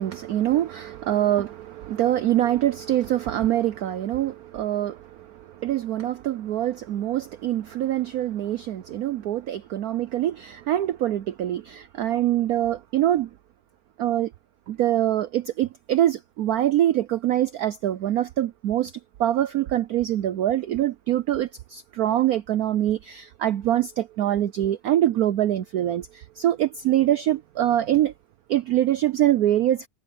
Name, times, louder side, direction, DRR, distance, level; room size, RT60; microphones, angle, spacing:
voice 1, 0.0-13.3 14.0-14.3 14.7-18.9 19.2-28.1 28.5-29.9, right 12 dB, 85° right, 0.8 m, -24 dB
omnidirectional pair, 2.2 m